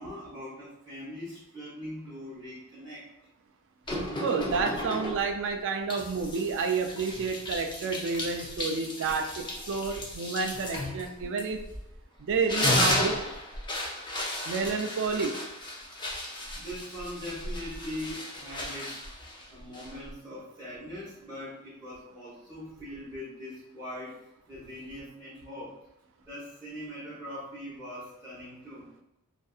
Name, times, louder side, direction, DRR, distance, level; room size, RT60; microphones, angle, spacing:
voice 1, 0.0-3.0 16.5-19.0 19.5-24.2 24.5-25.7 26.3-28.9, equal, 15° right, -12 dB, 1.0 m, -41 dB
sound 1, 3.9-5.4 5.9-12.0 12.3-20.1, left 1 dB, 20° left, 0.5 m, -34 dB
voice 2, 4.2-11.6 12.2-13.2 14.5-15.4, right 4 dB, 55° right, 5 dB, 0.3 m, -30 dB
2.5 x 2.5 x 2.4 m, 0.87 s
head